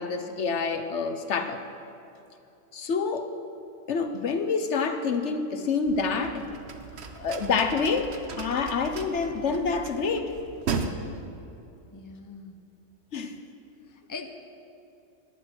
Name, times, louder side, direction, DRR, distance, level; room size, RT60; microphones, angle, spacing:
voice 1, 0.0-1.6 2.7-3.3 3.9-6.5 7.2-10.3 13.1-13.3, left 5 dB, 70° left, 8 dB, 1.2 m, -27 dB
sound 1, 5.9-10.9, right 5 dB, 65° right, 1.2 m, -37 dB
voice 2, 11.9-12.6 13.9-14.3, left 4 dB, 20° left, 6 dB, 0.8 m, -41 dB
18.5 x 10.5 x 6.3 m, 2.8 s
omnidirectional pair, 1.2 m